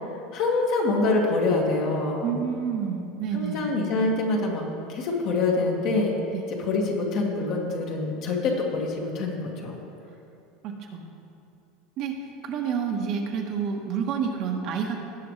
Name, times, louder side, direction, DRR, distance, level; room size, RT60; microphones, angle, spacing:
voice 1, 0.3-2.4 3.3-6.1 6.5-9.8, left 3 dB, 55° left, -1 dB, 2.0 m, -25 dB
voice 2, 2.2-3.7 6.3-6.5 10.6-11.1 12.0-12.2 12.4-15.0, right 7 dB, 50° right, 1 dB, 1.3 m, -29 dB
17.5 x 7.0 x 3.3 m, 2.6 s
supercardioid pair, 125°, 0 cm